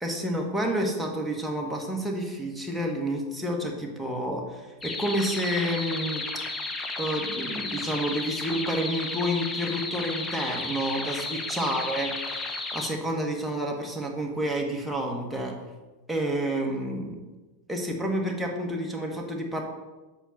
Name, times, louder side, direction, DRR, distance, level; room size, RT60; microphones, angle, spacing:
voice 1, 0.0-6.2 7.0-12.4 12.7-15.5 16.1-17.2 17.7-19.6, equal, ahead, -1 dB, 1.4 m, -29 dB
sound 1, 4.8-12.9, left 3 dB, 15° left, 1.0 m, -33 dB
7.9 x 6.0 x 4.2 m, 1.2 s
figure-of-eight pair, 90°, 0 cm